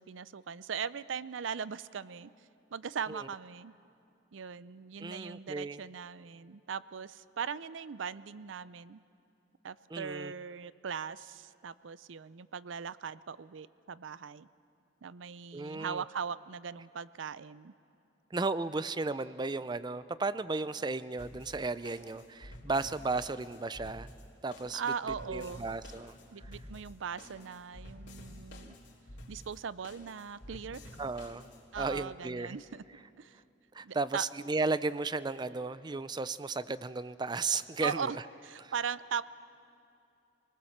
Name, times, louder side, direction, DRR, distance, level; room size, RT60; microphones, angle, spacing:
voice 1, 0.0-2.3 2.7-3.7 4.3-9.0 9.6-14.5 15.0-17.7 24.7-25.7 26.3-28.7 29.3-30.9 31.7-32.8 33.2-33.4 33.8-34.3 37.8-38.2 38.4-39.2, right 6 dB, 85° right, 17 dB, 0.5 m, -39 dB
voice 2, 5.0-5.8 9.9-10.3 15.5-16.0 18.3-24.1 24.4-24.8 25.3-26.2 31.0-31.5 31.8-32.6 33.7-38.2 38.6-38.7, right 3 dB, 25° right, 15 dB, 0.5 m, -34 dB
sound 1, 21.2-31.9, left 1 dB, 65° left, 3.6 m, -50 dB
27.5 x 19.5 x 7.2 m, 2.7 s
head